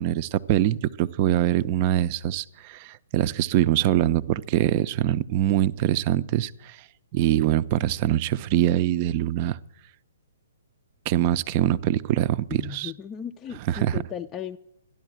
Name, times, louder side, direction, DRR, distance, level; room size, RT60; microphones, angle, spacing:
voice 1, 0.0-6.8 7.1-9.6 11.1-12.9 13.7-14.0, right 13 dB, 35° right, 16 dB, 0.5 m, -23 dB
voice 2, 12.5-14.6, left 9 dB, 20° left, 4 dB, 0.4 m, -36 dB
12.5 x 11.0 x 7.8 m, 0.79 s
figure-of-eight pair, 125°, 0 cm